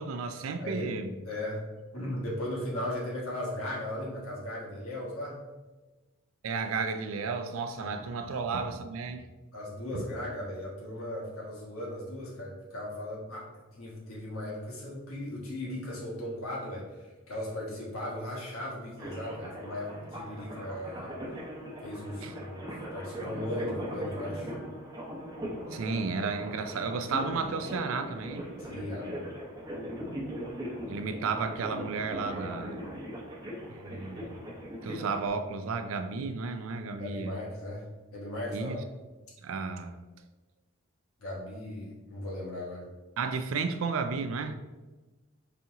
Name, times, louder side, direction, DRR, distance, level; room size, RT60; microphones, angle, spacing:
voice 1, 0.0-1.1 6.4-9.3 9.9-10.0 22.2-22.3 25.7-28.5 30.9-32.8 33.7-34.4 34.8-37.4 38.5-38.8 39.4-39.9 43.2-44.6, right 4 dB, 75° right, 8 dB, 0.4 m, -33 dB
voice 2, 0.6-0.9 1.2-1.6 1.9-5.4 7.8-7.9 9.5-13.5 13.7-21.1 21.8-24.5 28.6-29.3 37.0-37.8 38.1-38.9 41.2-42.9, left 1 dB, 85° left, -4 dB, 1.4 m, -37 dB
sound 1, 19.0-35.3, equal, 15° right, 0.7 m, -40 dB
4.1 x 2.9 x 3.5 m, 1.2 s
head